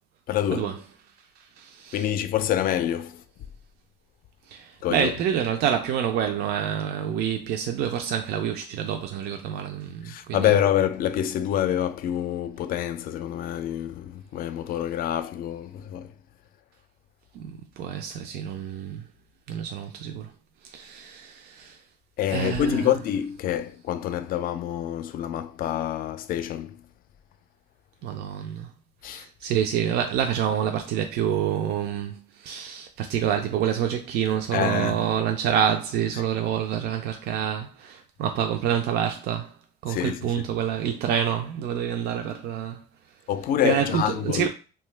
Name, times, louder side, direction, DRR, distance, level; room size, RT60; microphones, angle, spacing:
voice 1, 0.3-0.7 1.9-3.2 4.8-5.1 10.1-16.1 22.2-26.8 29.0-29.3 34.5-35.1 39.9-40.3 43.3-44.5, left 10 dB, 60° left, 0.4 m, -26 dB
voice 2, 1.4-2.1 4.5-10.5 17.3-19.0 19.5-20.3 20.6-21.8 22.3-22.9 28.0-28.7 29.0-39.6 39.8-42.8 43.6-44.5, right 9 dB, 75° right, 0.4 m, -27 dB
2.7 x 2.2 x 3.2 m
cardioid pair, 110°, 17 cm